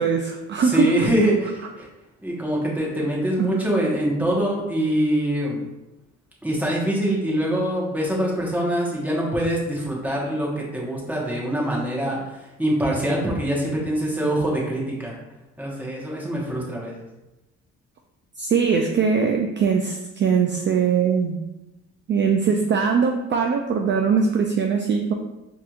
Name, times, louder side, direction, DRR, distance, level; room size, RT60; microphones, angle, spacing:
voice 1, 0.0-1.1 3.4-3.5 18.4-21.4 22.1-25.1, right 6 dB, 40° right, 3 dB, 0.4 m, -21 dB
voice 2, 0.6-1.9 2.2-5.6 6.4-15.2 15.6-17.0, right 1 dB, 5° right, -4 dB, 1.2 m, -24 dB
4.7 x 3.0 x 2.4 m, 0.97 s
cardioid pair, 90°, 30 cm